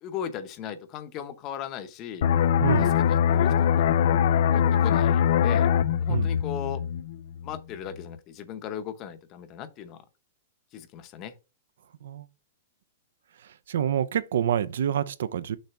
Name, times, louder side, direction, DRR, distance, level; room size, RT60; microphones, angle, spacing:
voice 1, 0.0-2.3 2.8-4.2 4.5-5.7 6.0-6.8 7.4-10.0 10.7-11.3, left 9 dB, 25° left, 0.8 m, -37 dB
sound 1, 2.2-7.6 7.9-8.2, left 8 dB, 55° left, 0.4 m, -22 dB
voice 2, 2.6-2.9 6.1-6.3 12.0-12.3 13.4-15.6, right 9 dB, 75° right, 0.6 m, -27 dB
6.5 x 3.4 x 5.7 m
supercardioid pair, 165°, 0 cm